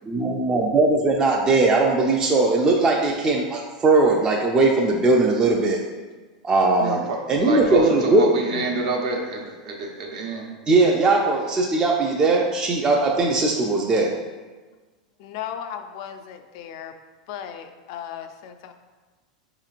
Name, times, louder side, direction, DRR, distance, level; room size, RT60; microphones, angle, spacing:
voice 1, 0.0-5.8 6.4-7.0 7.3-8.3 10.7-14.1, right 3 dB, 20° right, -1 dB, 0.4 m, -19 dB
voice 2, 6.8-10.5, right 3 dB, 70° right, 0 dB, 0.8 m, -28 dB
voice 3, 15.2-16.9 17.3-18.7, left 9 dB, 60° left, 7 dB, 0.3 m, -36 dB
4.8 x 2.9 x 2.4 m, 1.3 s
hypercardioid pair, 120°, 4 cm